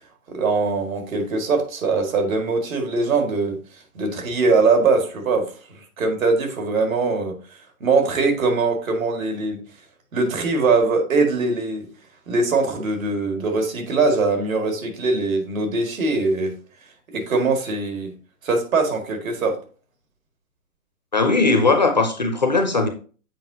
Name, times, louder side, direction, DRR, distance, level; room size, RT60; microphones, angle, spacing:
voice 1, 0.3-3.6 3.9-7.4 7.8-9.6 10.1-11.9 12.3-16.5 17.1-18.1 18.4-19.6, right 3 dB, 65° right, 2.0 m, -22 dB
voice 2, 21.1-22.9, left 3 dB, 35° left, 0.4 m, -18 dB
7.7 x 4.8 x 2.7 m
hypercardioid pair, 165°, 43 cm